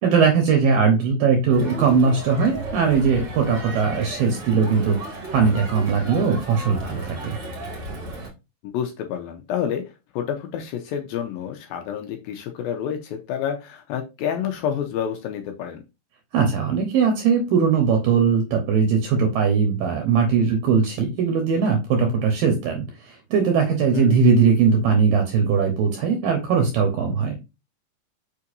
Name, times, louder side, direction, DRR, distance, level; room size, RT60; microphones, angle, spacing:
voice 1, 0.0-7.4 16.3-27.4, right 5 dB, 70° right, 3 dB, 2.4 m, -20 dB
Crowd, 1.5-8.3, right 1 dB, 45° right, 1.5 m, -35 dB
voice 2, 8.6-9.8 10.1-15.8 23.9-24.3, left 8 dB, 80° left, 4 dB, 2.2 m, -29 dB
6.7 x 5.6 x 2.6 m, 0.26 s
omnidirectional pair, 4.9 m